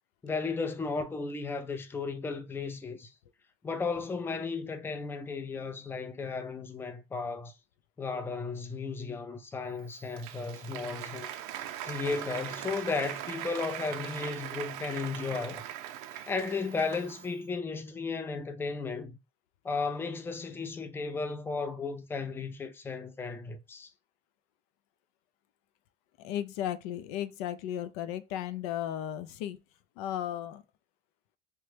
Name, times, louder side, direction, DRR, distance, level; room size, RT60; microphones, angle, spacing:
voice 1, 0.2-3.1 3.6-7.5 8.0-11.3 11.8-15.6 16.3-19.2 19.6-23.9, left 4 dB, 10° left, 0.4 m, -34 dB
Applause, 9.8-17.4, right 11 dB, 85° right, 0.5 m, -40 dB
voice 2, 26.2-29.6 30.0-30.6, left 11 dB, 80° left, 0.4 m, -35 dB
3.0 x 2.1 x 3.2 m
supercardioid pair, 115°, 19 cm